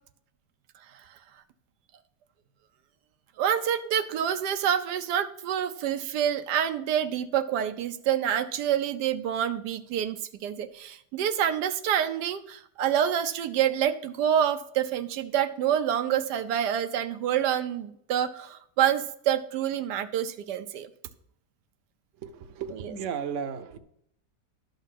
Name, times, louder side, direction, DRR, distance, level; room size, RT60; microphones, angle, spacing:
voice 1, 3.4-20.9 22.7-22.9, right 9 dB, 80° right, 9 dB, 1.2 m, -27 dB
voice 2, 22.2-23.8, right 7 dB, 55° right, 8 dB, 1.0 m, -34 dB
12.0 x 4.1 x 7.4 m, 0.70 s
omnidirectional pair, 1.8 m